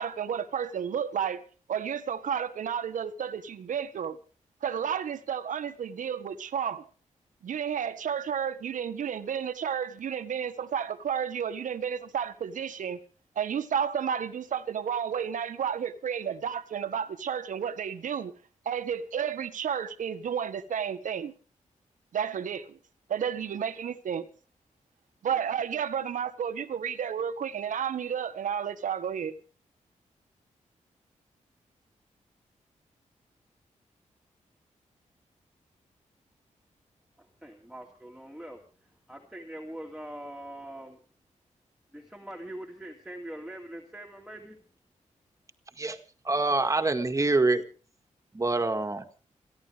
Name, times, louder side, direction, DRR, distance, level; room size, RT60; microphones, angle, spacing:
voice 1, 0.0-1.4 1.7-4.2 4.6-6.9 7.4-13.0 13.3-18.3 18.6-21.3 22.1-22.8 23.1-24.2 25.2-29.4, right 8 dB, 90° right, 1.4 m, -31 dB
voice 2, 37.2-41.0 41.9-44.6, right 1 dB, 5° right, 2.4 m, -43 dB
voice 3, 46.2-47.6 48.3-49.0, right 3 dB, 25° right, 1.8 m, -25 dB
29.5 x 11.0 x 3.4 m
wide cardioid pair, 105°, 13 cm